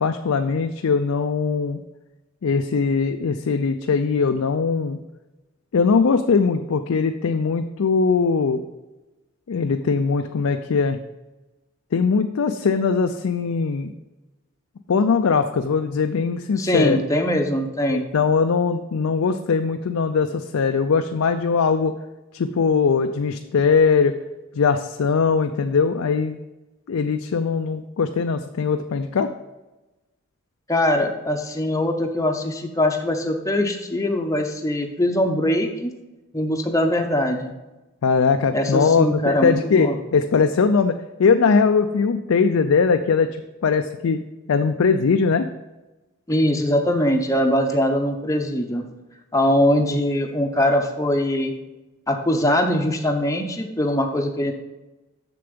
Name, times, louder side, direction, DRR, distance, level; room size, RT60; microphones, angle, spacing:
voice 1, 0.0-1.8 2.4-5.0 5.7-8.6 9.5-11.0 11.9-13.9 14.9-17.0 17.9-21.9 22.3-24.1 24.5-26.4 26.9-29.3 38.0-44.2 44.5-45.5, left 5 dB, 75° left, 7 dB, 0.4 m, -20 dB
voice 2, 16.6-18.1 30.7-35.9 36.3-37.5 38.5-39.9 46.3-48.8 49.3-51.5 52.1-54.5, left 1 dB, 15° left, 3 dB, 0.7 m, -22 dB
6.8 x 6.8 x 5.2 m, 1.1 s
head